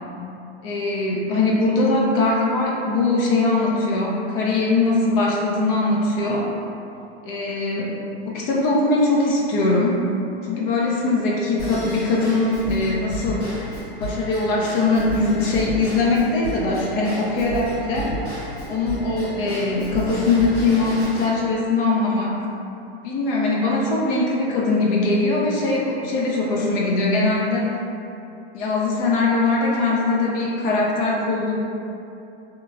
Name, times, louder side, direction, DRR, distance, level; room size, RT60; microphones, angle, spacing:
voice 1, 0.6-6.5 7.2-8.0 8.3-10.0 10.4-18.1 18.7-22.4 23.0-27.8 28.5-31.5, left 2 dB, 60° left, -3 dB, 0.5 m, -21 dB
Drum kit / Drum / Bell, 11.6-21.3, right 1 dB, 80° left, 1.5 m, -33 dB
2.9 x 2.2 x 2.4 m, 2.8 s
hypercardioid pair, 110°, 32 cm